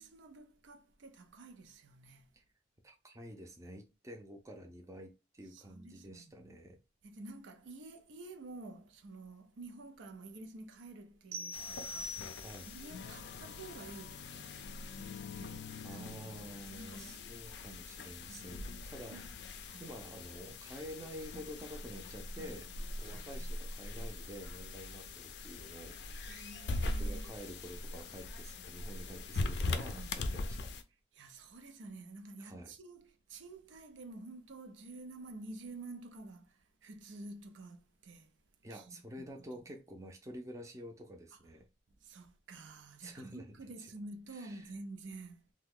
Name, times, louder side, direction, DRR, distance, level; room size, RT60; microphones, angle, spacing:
voice 1, 0.0-2.3 5.5-6.4 7.0-12.4 12.7-14.5 15.0-16.4 16.7-17.2 18.3-18.4 19.1-19.3 19.7-19.8 23.0-23.5 26.3-27.4 29.8-30.2 31.1-38.4 38.7-39.0 41.3-41.4 42.0-45.5, right 2 dB, 85° right, 0.5 m, -50 dB
voice 2, 2.8-6.8 12.4-12.7 15.8-19.2 19.8-26.4 26.8-30.7 32.4-32.7 38.6-41.7 43.0-43.5 44.3-44.7, equal, 15° right, 0.5 m, -49 dB
sound 1, 11.3-12.8, left 1 dB, 55° right, 0.8 m, -43 dB
sound 2, 11.5-30.8, left 2 dB, 65° left, 0.4 m, -42 dB
2.7 x 2.2 x 3.6 m
head